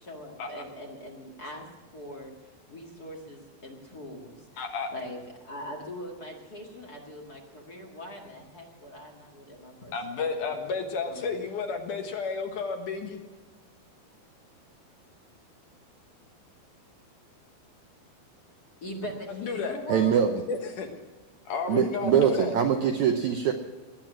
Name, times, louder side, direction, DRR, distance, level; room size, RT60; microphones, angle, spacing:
voice 1, 0.0-1.6 1.9-2.3 2.7-4.6 4.9-9.9 10.4-10.7 11.1-11.3 18.8-20.3, equal, 35° left, 0 dB, 1.6 m, -42 dB
voice 2, 4.6-4.9 9.9-13.2 19.3-19.8 20.5-20.9 21.5-22.5, left 5 dB, 65° left, 4 dB, 2.5 m, -32 dB
voice 3, 19.9-20.4 21.7-23.5, right 8 dB, 75° right, 4 dB, 1.7 m, -23 dB
20.5 x 9.1 x 6.2 m, 1.4 s
omnidirectional pair, 4.4 m